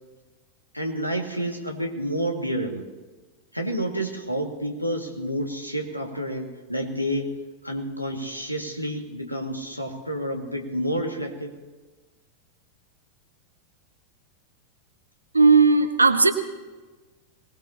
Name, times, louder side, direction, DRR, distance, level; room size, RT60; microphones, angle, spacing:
voice 1, 0.7-2.8 3.5-7.4 7.6-11.5, equal, 90° left, 2 dB, 2.2 m, -29 dB
voice 2, 15.3-16.3, right 4 dB, 80° right, 8 dB, 1.3 m, -16 dB
24.5 x 19.5 x 3.0 m, 1.3 s
figure-of-eight pair, 90°, 0 cm